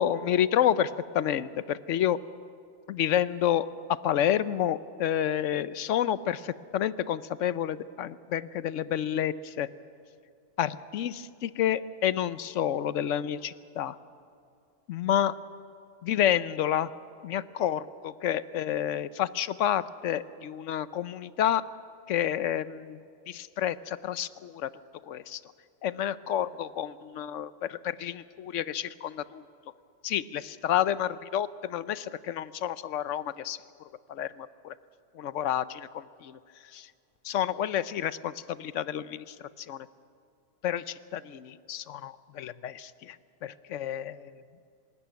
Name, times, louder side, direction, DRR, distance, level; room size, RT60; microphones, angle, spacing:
voice 1, 0.0-2.2 2.9-9.7 10.6-13.9 14.9-15.3 16.0-16.9 17.2-21.6 22.1-24.7 25.0-25.4 25.8-29.4 30.0-33.6 34.1-34.7 35.1-36.4 36.7-36.9 37.2-39.9 40.6-43.2 43.4-44.4, left 10 dB, 80° left, 16 dB, 1.0 m, -29 dB
24.5 x 13.5 x 9.5 m, 2.4 s
omnidirectional pair, 1.3 m